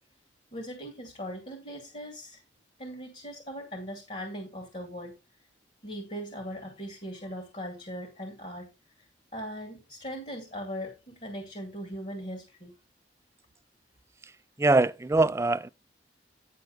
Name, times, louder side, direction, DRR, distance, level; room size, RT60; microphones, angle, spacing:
voice 1, 0.5-2.4 2.8-5.2 5.8-8.7 9.0-12.7, equal, 40° left, 2.3 m, -39 dB
voice 2, 14.6-15.7, right 2 dB, 15° right, 0.4 m, -23 dB
10.5 x 6.3 x 4.0 m
head